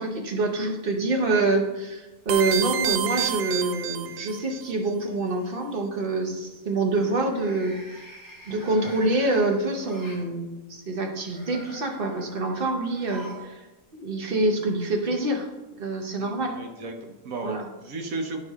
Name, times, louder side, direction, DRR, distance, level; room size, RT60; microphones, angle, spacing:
voice 1, 0.0-7.8 8.5-13.6 13.9-15.5 15.8-16.6 17.4-17.7, right 2 dB, 40° right, 2 dB, 1.1 m, -26 dB
sound 1, 2.3-4.6, right 9 dB, 85° right, 1.1 m, -28 dB
sound 2, 4.7-5.1 7.1-10.3 11.1-13.5 13.8-13.9 15.0-15.1, equal, 15° right, 1.4 m, -46 dB
voice 2, 16.2-18.4, right 2 dB, 70° right, 3 dB, 1.4 m, -34 dB
11.0 x 4.8 x 3.6 m, 1.1 s
omnidirectional pair, 1.5 m